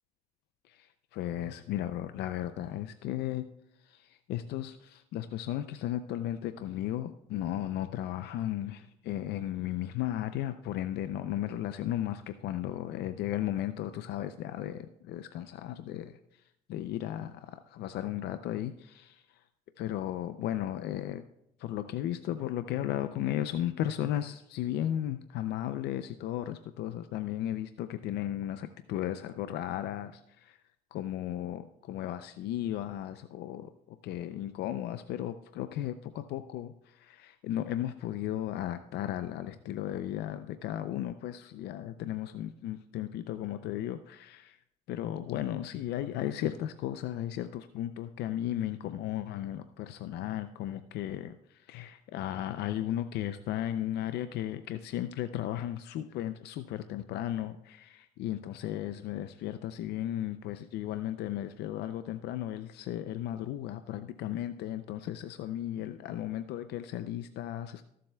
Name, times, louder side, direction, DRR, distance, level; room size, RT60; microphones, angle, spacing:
voice 1, 0.7-3.5 3.8-16.4 16.7-19.4 19.8-21.2 21.6-30.6 30.9-44.6 44.9-67.8, left 12 dB, 75° left, 10 dB, 0.5 m, -35 dB
21.5 x 7.6 x 2.3 m, 0.80 s
cardioid pair, 110°, 17 cm